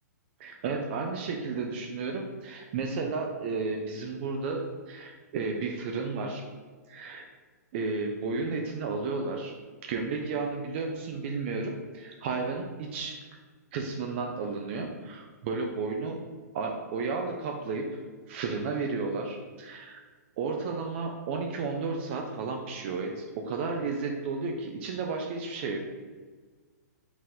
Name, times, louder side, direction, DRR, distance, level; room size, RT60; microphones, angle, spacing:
voice 1, 0.4-6.4 6.9-7.3 7.7-9.5 9.8-13.2 13.7-16.2 16.5-18.0 18.3-20.0 20.4-25.8, right 4 dB, 40° right, 2 dB, 0.4 m, -33 dB
4.0 x 2.5 x 4.3 m, 1.5 s
hypercardioid pair, 145°, 9 cm